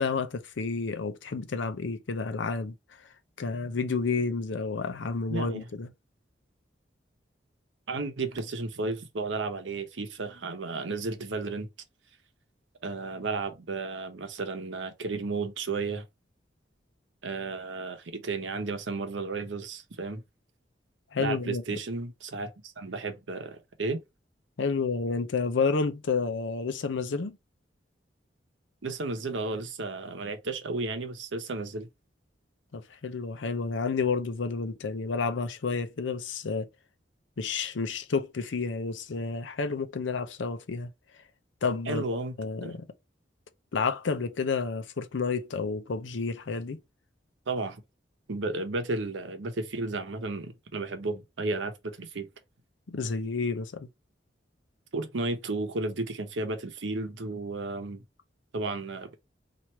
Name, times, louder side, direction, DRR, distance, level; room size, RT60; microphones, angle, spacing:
voice 1, 0.0-3.1 3.4-5.9 21.1-21.8 24.6-27.4 32.7-36.7 37.4-40.9 41.6-42.0 42.4-42.9 43.7-46.8 52.9-53.9, left 4 dB, 85° left, 0.6 m, -30 dB
voice 2, 5.3-5.7 7.9-11.7 12.8-16.0 17.2-20.2 21.2-24.0 28.8-31.9 41.9-42.3 42.6-42.7 47.5-47.8 48.3-52.3 54.9-58.0 58.5-59.1, right 3 dB, 90° right, 0.8 m, -33 dB
3.1 x 2.5 x 4.3 m
head